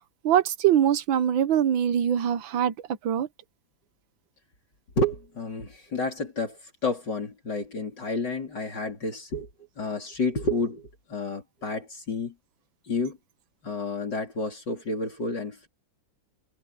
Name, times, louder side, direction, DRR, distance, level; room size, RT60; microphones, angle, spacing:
voice 1, 0.2-2.7 3.0-3.3, right 10 dB, 90° right, 1.7 m, -23 dB
voice 2, 5.0-9.5 9.8-12.3 12.8-13.2 13.6-15.7, left 2 dB, 65° left, 4.6 m, -30 dB
omnidirectional pair, 2.1 m